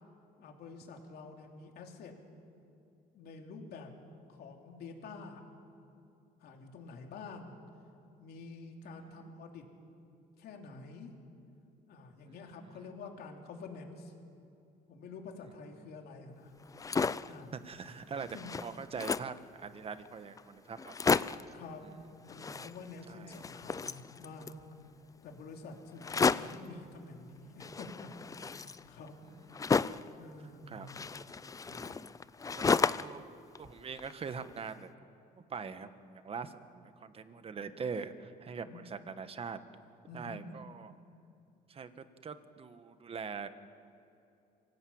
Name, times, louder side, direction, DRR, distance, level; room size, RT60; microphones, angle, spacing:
voice 1, 0.4-2.1 3.1-3.9 4.3-5.4 6.4-7.5 8.2-9.7 10.4-11.1 11.9-14.1 14.9-16.5 17.3-17.6 18.3-18.5 21.5-21.8 22.3-24.5 25.2-28.1 28.4-29.1 30.2-30.9 38.6-38.9 40.1-40.6, left 4 dB, 70° left, 2 dB, 3.3 m, -48 dB
voice 2, 12.3-12.8 17.5-18.3 18.6-20.9 21.8-22.0 23.1-23.4 29.5-29.7 30.7-30.9 31.7-32.1 32.5-32.7 33.0-33.2 33.6-34.9 35.3-39.6 40.1-40.9 41.7-43.5, right 5 dB, 35° right, 10 dB, 1.4 m, -43 dB
sound 1, 16.6-17.4 17.9-18.0 18.2-19.4 20.1-20.2 20.4-20.5 20.8-21.5 22.3-23.1 23.3-24.6 26.0-26.7 27.6-30.1 30.9-33.2 33.6-34.5, left 5 dB, 20° left, 0.5 m, -33 dB
25.5 x 17.5 x 8.8 m, 2.7 s
cardioid pair, 110°, 17 cm